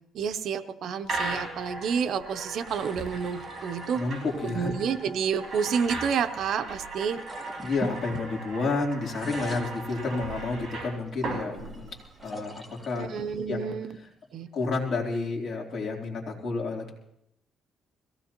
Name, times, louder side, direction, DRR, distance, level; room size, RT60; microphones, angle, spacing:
voice 1, 0.1-4.0 4.4-7.2 13.0-14.0 14.3-14.5, right 6 dB, 60° right, 10 dB, 0.7 m, -29 dB
sound 1, 1.0-12.3, right 3 dB, 35° right, 5.5 m, -37 dB
sound 2, 2.7-6.2 7.1-8.8 9.0-10.5 11.1-14.5, right 1 dB, ahead, 1.7 m, -45 dB
voice 2, 3.9-4.7 7.6-11.9 12.2-13.1 13.5-13.8 14.5-16.9, left 3 dB, 50° left, -1 dB, 3.3 m, -30 dB
22.0 x 16.5 x 3.0 m, 0.78 s
cardioid pair, 130°, 0 cm